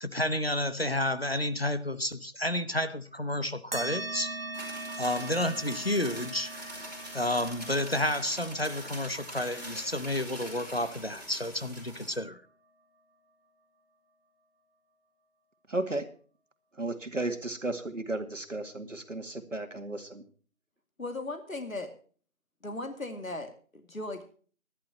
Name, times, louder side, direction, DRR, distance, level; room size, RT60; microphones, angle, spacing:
voice 1, 0.0-4.3 5.0-6.5 7.1-12.4, left 1 dB, 45° left, 0.9 m, -30 dB
sound 1, 3.7-12.6, right 2 dB, 45° right, 1.9 m, -42 dB
sound 2, 4.5-12.2, equal, 30° right, 4.9 m, -44 dB
voice 2, 15.7-16.1 16.8-20.2, right 2 dB, 65° right, 2.3 m, -34 dB
voice 3, 21.0-21.9 22.6-24.2, left 2 dB, 75° left, 2.4 m, -37 dB
22.0 x 11.5 x 2.9 m
figure-of-eight pair, 180°, 41 cm